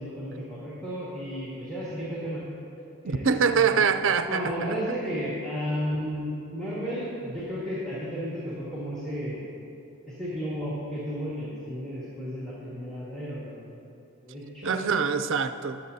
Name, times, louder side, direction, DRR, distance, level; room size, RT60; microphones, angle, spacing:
voice 1, 0.0-2.4 3.0-3.3 3.6-3.8 4.2-9.4 10.1-13.6 14.2-14.8, equal, 5° left, -8 dB, 1.7 m, -33 dB
voice 2, 3.0-4.7 14.6-15.8, right 6 dB, 60° right, 10 dB, 0.5 m, -24 dB
20.5 x 7.1 x 2.7 m, 2.7 s
head